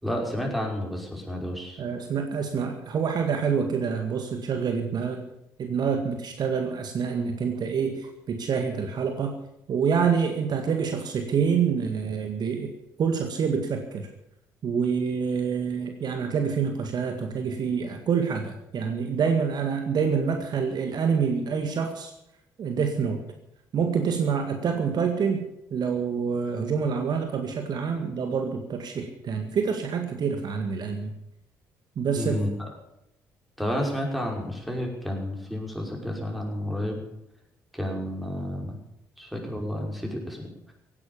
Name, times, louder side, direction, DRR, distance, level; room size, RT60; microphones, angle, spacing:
voice 1, 0.0-1.8 32.1-32.5 33.6-37.0 37.7-38.8 39.2-40.7, left 1 dB, ahead, 1 dB, 5.7 m, -31 dB
voice 2, 1.8-5.2 5.6-9.3 9.7-12.7 13.0-14.1 14.6-22.1 22.6-23.2 23.7-31.1 32.0-32.4, right 6 dB, 50° right, 5 dB, 1.9 m, -27 dB
17.0 x 11.0 x 7.1 m, 0.82 s
hypercardioid pair, 45°, 9 cm